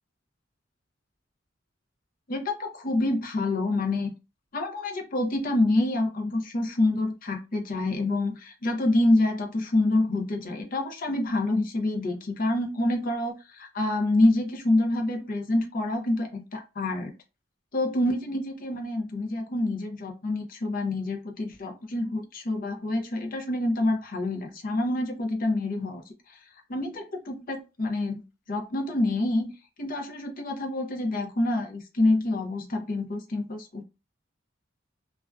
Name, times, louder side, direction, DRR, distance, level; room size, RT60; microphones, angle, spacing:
voice 1, 2.3-4.1 4.5-17.1 17.7-26.4 26.7-28.2 28.5-29.5 29.8-33.8, left 2 dB, 45° left, 3 dB, 0.6 m, -27 dB
2.5 x 2.2 x 2.2 m, 0.29 s
head